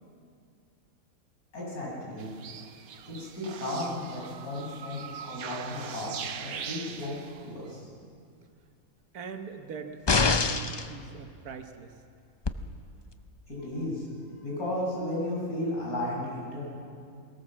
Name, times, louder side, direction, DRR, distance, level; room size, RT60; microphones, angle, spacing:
voice 1, 1.5-2.3 3.1-7.2 7.4-7.9 13.5-14.0 14.4-16.6, left 1 dB, 80° left, -4 dB, 6.8 m, -34 dB
sound 1, 2.2-7.5, right 7 dB, 70° right, 1.3 m, -41 dB
voice 2, 9.1-11.9, right 5 dB, 90° right, 6 dB, 1.8 m, -42 dB
sound 2, 10.1-10.9 12.5-12.6, left 4 dB, 40° left, 0.3 m, -24 dB
20.5 x 18.0 x 7.4 m, 2.3 s
omnidirectional pair, 1.5 m